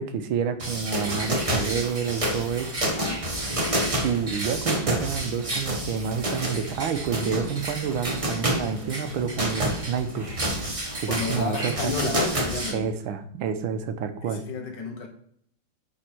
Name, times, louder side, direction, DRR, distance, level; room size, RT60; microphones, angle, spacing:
voice 1, 0.0-3.0 4.0-10.3 11.0-12.1 12.7-14.4, right 6 dB, 85° right, 1.6 m, -29 dB
sound 1, 0.6-12.7, right 1 dB, 20° right, 1.1 m, -29 dB
voice 2, 2.8-3.3 11.1-12.9 14.2-15.1, left 4 dB, 65° left, 1.7 m, -32 dB
10.0 x 4.4 x 4.4 m
omnidirectional pair, 2.2 m